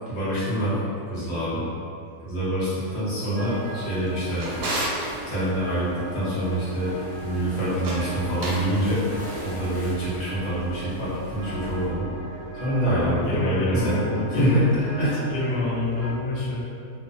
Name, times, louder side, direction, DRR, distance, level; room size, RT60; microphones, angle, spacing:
voice 1, 0.1-0.8 1.1-1.6 2.2-4.5 5.2-7.0 7.2-9.0 9.4-12.0 12.6-14.0 14.3-15.2, right 1 dB, 50° left, -11 dB, 0.9 m, -25 dB
Waves surf, 3.2-11.9, equal, 50° right, 0.6 m, -42 dB
sound 1, 3.3-16.1, right 1 dB, 20° left, 1.0 m, -38 dB
Drawer open or close, 3.9-5.1 7.7-8.7, right 1 dB, 80° right, 1.1 m, -31 dB
voice 2, 12.9-14.6 15.3-16.6, left 2 dB, 90° left, -5 dB, 1.1 m, -27 dB
2.8 x 2.1 x 2.5 m, 2.5 s
omnidirectional pair, 1.6 m